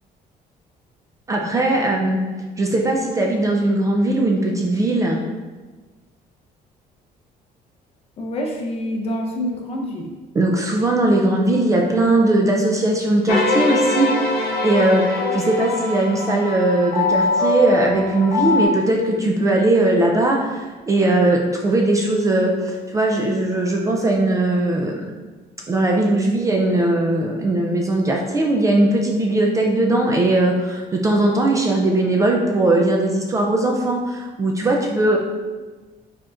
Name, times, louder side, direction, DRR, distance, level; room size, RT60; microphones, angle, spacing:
voice 1, 1.3-2.2 2.6-5.2 10.4-25.0 25.7-35.2, right 2 dB, 20° right, 0 dB, 0.3 m, -19 dB
voice 2, 8.2-10.1 35.0-35.2, equal, 40° left, 1 dB, 0.6 m, -27 dB
sound 1, 13.3-18.6, left 3 dB, 70° left, 0.9 m, -22 dB
4.9 x 4.3 x 2.4 m, 1.3 s
cardioid pair, 175°, 16 cm